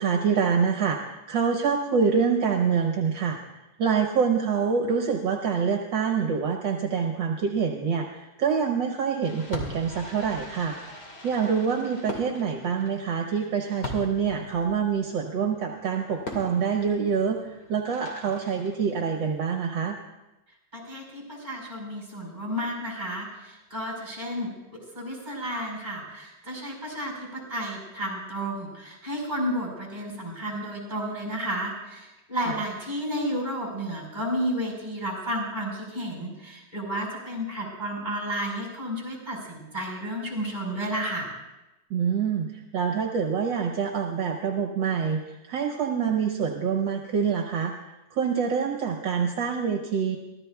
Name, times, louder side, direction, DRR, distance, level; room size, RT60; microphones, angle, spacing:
voice 1, 0.0-3.4 3.8-20.0 32.5-32.6 41.9-47.7 48.1-50.2, right 6 dB, 70° right, 3 dB, 1.6 m, -26 dB
Fireworks, 9.2-19.4, left 2 dB, 55° left, 2.7 m, -41 dB
voice 2, 20.7-24.5 24.9-41.3, equal, 20° right, -1 dB, 4.9 m, -32 dB
24.0 x 15.5 x 2.3 m, 0.99 s
omnidirectional pair, 2.2 m